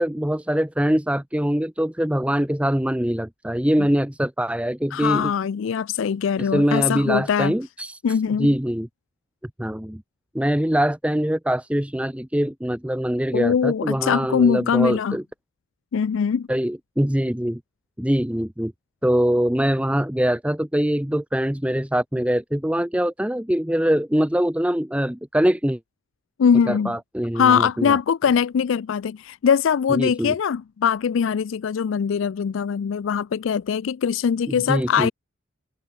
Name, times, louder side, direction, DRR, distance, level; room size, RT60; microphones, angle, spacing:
voice 1, 0.0-5.3 6.4-8.9 9.6-10.0 10.3-15.2 16.5-17.6 18.0-18.7 19.0-25.8 26.7-28.0 29.9-30.3 34.5-35.1, equal, 5° right, 0.8 m, -23 dB
voice 2, 4.9-7.5 8.0-8.5 13.3-15.2 15.9-16.5 26.4-26.9 27.3-35.1, left 7 dB, 70° left, 0.4 m, -22 dB
head